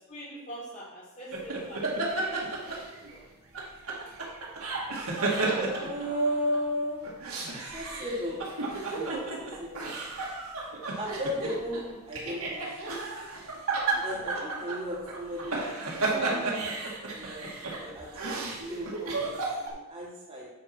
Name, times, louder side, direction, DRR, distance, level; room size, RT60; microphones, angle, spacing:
voice 1, 0.1-1.8 2.1-3.3, right 1 dB, 35° left, -10 dB, 2.9 m, -45 dB
sound 1, 1.3-3.2 3.5-6.6 7.0-19.7, right 3 dB, 75° right, 2.0 m, -32 dB
voice 2, 5.4-7.1 7.5-9.9 11.0-13.0 13.9-15.8 16.1-16.8 17.1-20.5, equal, 25° right, -7 dB, 3.0 m, -35 dB
9.5 x 4.2 x 6.0 m, 1.1 s
head